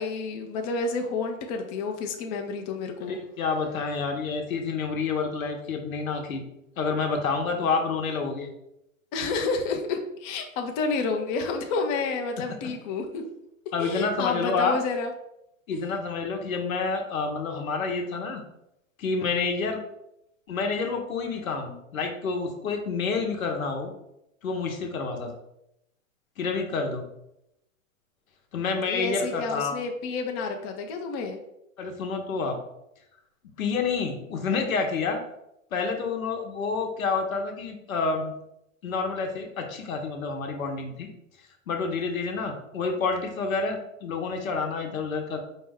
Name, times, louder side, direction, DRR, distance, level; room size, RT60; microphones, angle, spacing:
voice 1, 0.0-3.2 9.1-13.2 13.8-15.1 15.7-15.8 28.8-31.4, left 4 dB, 30° left, 4 dB, 0.4 m, -30 dB
voice 2, 3.0-6.4 6.8-8.5 13.7-14.8 15.7-18.4 19.0-19.8 20.5-23.9 24.4-25.3 26.4-27.0 28.5-29.7 31.8-32.6 33.6-35.2 35.7-38.3 38.8-41.1 41.7-45.4, left 4 dB, 85° left, 3 dB, 0.9 m, -28 dB
4.4 x 2.1 x 3.4 m, 0.82 s
hypercardioid pair, 115°, 41 cm